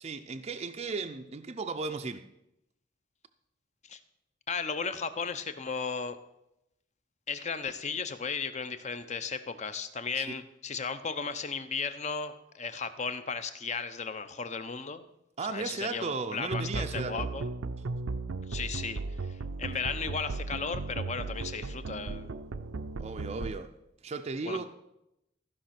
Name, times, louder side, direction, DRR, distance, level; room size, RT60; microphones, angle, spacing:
voice 1, 0.0-2.2 10.1-10.4 15.4-17.3 23.0-23.7 24.0-24.7, right 4 dB, 30° right, 6 dB, 0.5 m, -35 dB
voice 2, 4.5-6.2 7.3-15.0 15.5-17.5 18.5-19.0 19.3-22.3 24.4-24.7, left 5 dB, 35° left, 11 dB, 0.7 m, -35 dB
sound 1, 16.5-23.5, right 3 dB, 85° right, 0.6 m, -36 dB
14.0 x 5.4 x 5.9 m, 0.86 s
head